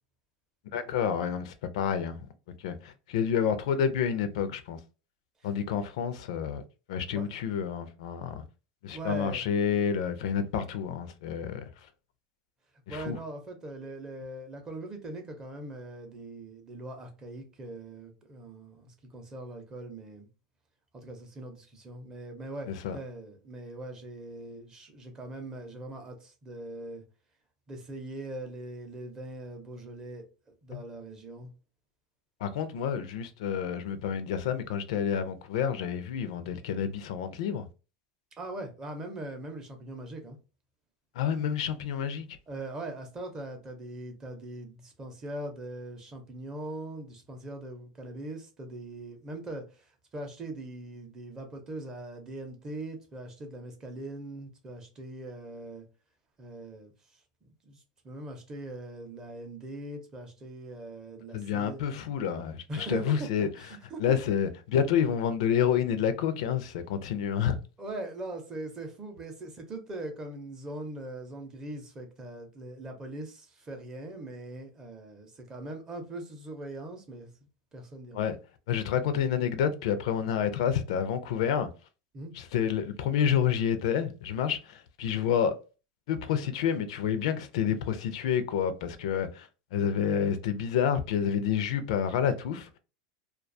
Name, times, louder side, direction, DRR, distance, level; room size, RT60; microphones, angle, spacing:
voice 1, 0.7-2.3 2.6-4.8 5.4-6.6 6.9-8.4 8.8-11.7 12.9-13.2 22.7-23.0 30.7-30.8 32.4-37.7 41.2-42.3 61.3-63.5 64.0-67.6 78.1-78.3 78.7-81.7 82.3-85.5 86.1-92.7, left 8 dB, 75° left, 0.4 m, -29 dB
voice 2, 8.9-9.5 12.9-20.3 20.9-27.0 27.7-30.2 30.6-31.5 38.4-40.4 42.5-55.9 56.4-61.9 62.7-64.2 67.8-77.3 77.7-78.3 82.1-82.3, right 2 dB, 20° right, 0.6 m, -41 dB
2.3 x 2.2 x 2.5 m
supercardioid pair, 155°, 3 cm